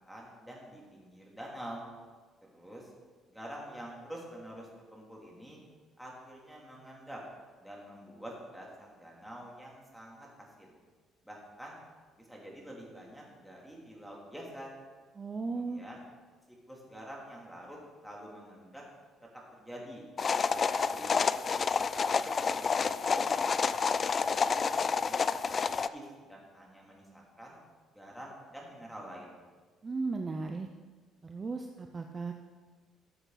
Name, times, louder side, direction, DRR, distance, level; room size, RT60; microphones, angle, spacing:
voice 1, 0.0-1.9 2.5-2.9 3.3-5.6 6.0-7.2 7.6-10.8 11.2-11.8 12.2-14.7 15.5-16.0 16.7-18.8 19.5-20.0 20.7-21.2 21.5-23.3 23.7-24.7 25.0-27.6 27.9-29.4, equal, ahead, -3 dB, 3.0 m, -47 dB
voice 2, 15.1-15.8 29.8-30.7 31.2-32.3, right 3 dB, 30° right, 4 dB, 0.7 m, -36 dB
sound 1, 20.2-25.9, left 5 dB, 35° left, 0.4 m, -29 dB
13.5 x 7.9 x 4.1 m, 1.4 s
cardioid pair, 100°, 0 cm